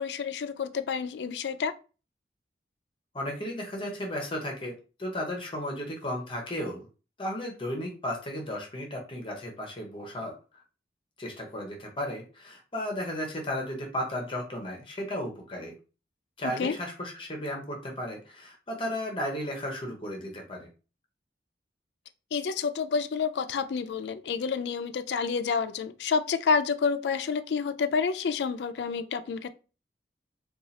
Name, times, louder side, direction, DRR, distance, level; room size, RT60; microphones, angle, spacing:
voice 1, 0.0-1.7 16.6-16.8 22.3-29.5, left 5 dB, 75° left, 0.4 m, -29 dB
voice 2, 3.1-6.9 7.2-10.6 11.2-15.7 16.4-20.7, equal, 30° left, 0.8 m, -34 dB
2.7 x 2.3 x 4.0 m
head